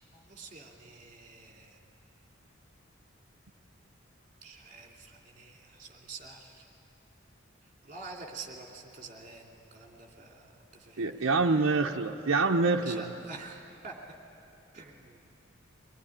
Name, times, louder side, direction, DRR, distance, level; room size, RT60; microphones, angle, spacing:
voice 1, 0.1-1.8 4.4-6.7 7.8-11.3 12.7-14.0 14.7-15.2, right 4 dB, 40° right, 0 dB, 2.8 m, -47 dB
voice 2, 11.0-13.0, right 3 dB, 85° right, 0 dB, 0.8 m, -26 dB
24.0 x 19.5 x 9.9 m, 2.9 s
head